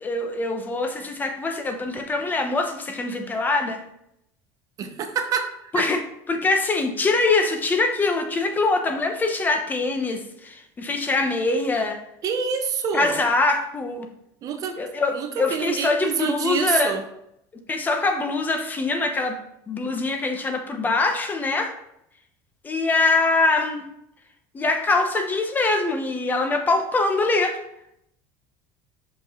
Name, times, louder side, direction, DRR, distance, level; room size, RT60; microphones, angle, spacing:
voice 1, 0.0-3.8 5.7-12.0 12.9-14.1 14.8-17.0 17.7-19.4 19.7-21.7 22.6-23.8 24.5-27.6, left 3 dB, 20° left, 5 dB, 0.9 m, -23 dB
voice 2, 4.8-5.5 5.7-5.9 12.2-13.2 14.4-14.8 15.1-17.0, right 6 dB, 40° right, 7 dB, 0.8 m, -26 dB
6.2 x 5.2 x 3.7 m, 0.77 s
supercardioid pair, 130°, 9 cm